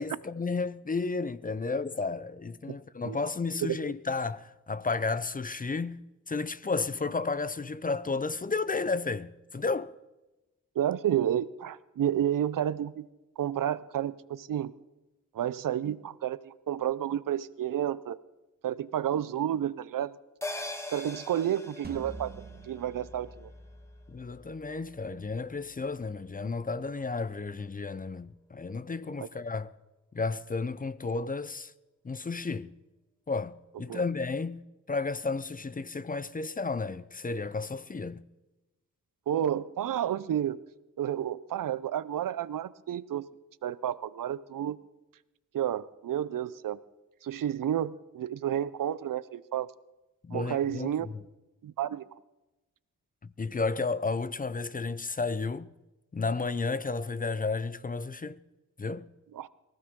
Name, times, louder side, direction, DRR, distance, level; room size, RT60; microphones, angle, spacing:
voice 1, 0.0-9.9 24.1-29.7 30.1-31.7 32.0-32.7 33.3-34.6 34.9-38.2 50.2-51.1 53.2-55.7 56.1-58.4 58.8-59.1, left 4 dB, 25° left, 0.6 m, -32 dB
voice 2, 10.8-13.1 13.4-14.7 15.3-18.2 18.6-20.2 20.9-22.3 22.6-23.5 29.2-29.3 33.9-34.0 39.3-40.6 41.0-43.3 43.6-44.8 45.5-46.8 47.2-49.7 50.3-51.1 51.6-52.1 59.3-59.5, right 10 dB, 85° right, 0.6 m, -31 dB
sound 1, 20.4-25.1 25.4-25.5, left 2 dB, 10° left, 1.4 m, -43 dB
sound 2, 21.8-26.9, right 2 dB, 30° right, 1.7 m, -49 dB
23.0 x 15.5 x 3.7 m
wide cardioid pair, 80°, 32 cm